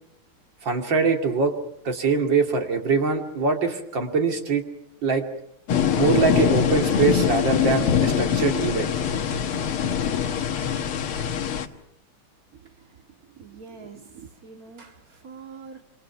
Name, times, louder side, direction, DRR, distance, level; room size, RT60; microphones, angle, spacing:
voice 1, 0.6-1.5 1.8-4.7 5.0-5.2 5.9-8.9, right 4 dB, 55° right, 3 dB, 3.3 m, -23 dB
sound 1, 5.7-11.7, left 8 dB, 75° left, 2.2 m, -23 dB
voice 2, 12.5-15.8, right 5 dB, 40° right, 4 dB, 2.7 m, -45 dB
26.5 x 26.5 x 5.9 m, 0.76 s
omnidirectional pair, 2.4 m